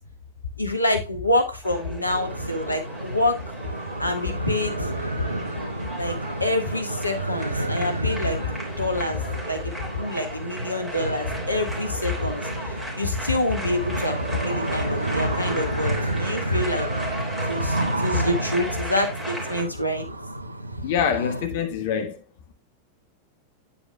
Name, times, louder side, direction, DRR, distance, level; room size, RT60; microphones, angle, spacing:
voice 1, 0.6-3.4 4.0-4.9 6.0-16.9 17.5-20.1, left 2 dB, 85° left, 1.7 m, -26 dB
sound 1, 1.6-19.6, right 1 dB, 5° right, 3.4 m, -36 dB
sound 2, 2.0-21.5, right 1 dB, 80° right, 0.7 m, -31 dB
voice 2, 20.8-22.2, left 7 dB, 50° left, 1.4 m, -25 dB
9.5 x 9.0 x 2.3 m
figure-of-eight pair, 90°, 0 cm